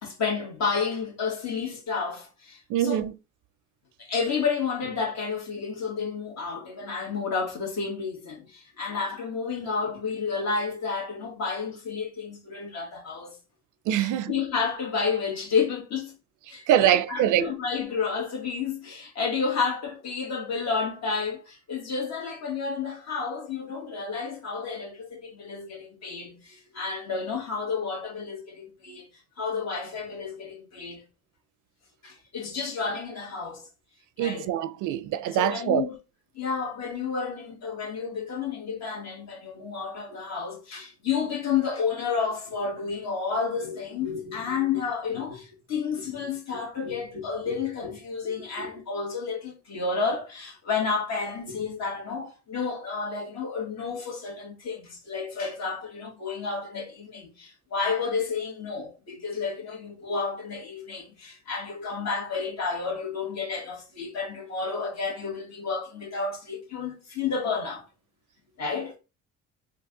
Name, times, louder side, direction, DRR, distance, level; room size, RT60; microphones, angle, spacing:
voice 1, 0.0-3.0 4.0-13.4 14.0-16.2 16.5-29.1 29.4-31.0 32.0-33.7 34.2-34.5 35.3-36.0 36.4-67.9 68.6-69.0, left 5 dB, 60° left, 1.8 m, -31 dB
voice 2, 2.7-3.1 13.9-14.3 16.7-17.5 34.2-35.9, right 11 dB, 85° right, 0.5 m, -24 dB
3.8 x 2.5 x 3.7 m
cardioid pair, 90°, 30 cm